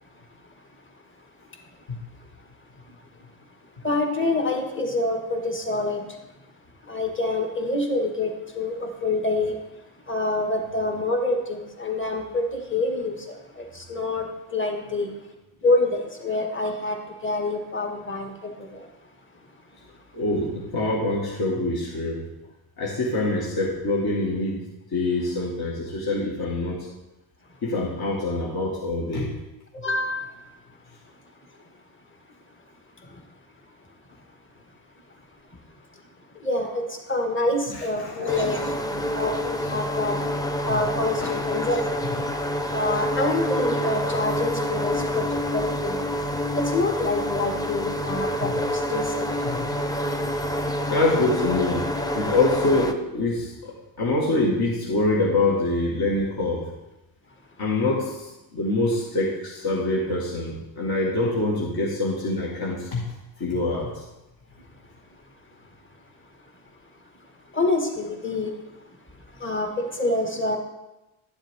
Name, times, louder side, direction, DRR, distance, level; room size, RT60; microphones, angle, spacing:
voice 1, 3.8-6.0 6.9-9.6 10.1-14.3 14.5-15.1 15.6-17.0 17.2-18.8 29.7-30.4 36.4-38.6 38.9-40.2 40.7-41.9 42.7-46.0 46.6-49.3 67.5-68.5 69.4-70.6, left 2 dB, 25° left, 2 dB, 1.9 m, -26 dB
voice 2, 20.1-22.2 22.8-24.6 24.9-26.9 27.6-29.3 37.7-38.6 40.7-40.8 41.2-41.4 42.1-42.2 45.1-45.2 48.4-48.5 49.5-49.7 50.9-51.9 52.1-56.7 57.6-63.1 63.4-64.0, left 2 dB, 45° left, -3 dB, 2.0 m, -25 dB
sound 1, 38.3-52.9, equal, 10° left, 0.8 m, -27 dB
11.5 x 7.2 x 3.7 m, 1.0 s
supercardioid pair, 75°, 50 cm